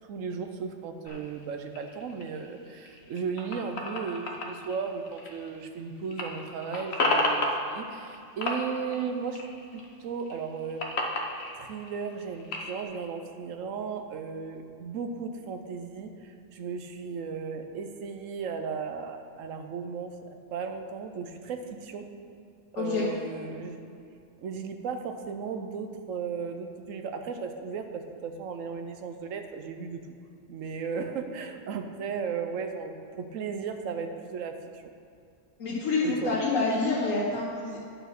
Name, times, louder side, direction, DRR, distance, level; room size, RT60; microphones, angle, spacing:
voice 1, 0.1-10.8 11.5-22.1 22.7-23.8 24.4-30.0 30.5-34.9 36.0-36.4, right 5 dB, 80° right, 6 dB, 1.1 m, -35 dB
sound 1, 1.1-5.8 6.1-8.2 8.4-9.9 10.2-12.8, left 2 dB, 55° left, 1.2 m, -32 dB
voice 2, 22.7-23.1 35.6-37.8, left 3 dB, 90° left, -5 dB, 1.5 m, -27 dB
9.9 x 4.7 x 5.9 m, 2.5 s
omnidirectional pair, 1.3 m